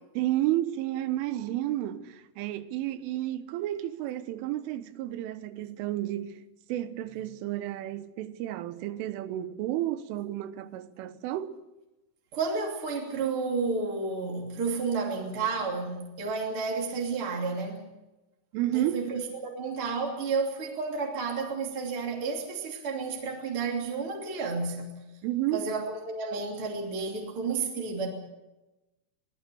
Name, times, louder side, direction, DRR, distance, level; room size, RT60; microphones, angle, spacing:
voice 1, 0.2-6.4 6.7-11.6 18.5-19.1 25.2-25.7, right 14 dB, 85° right, 3.6 m, -31 dB
voice 2, 12.3-17.9 18.7-25.0 25.5-28.1, right 4 dB, 30° right, 3.2 m, -31 dB
24.0 x 19.5 x 7.0 m
omnidirectional pair, 5.5 m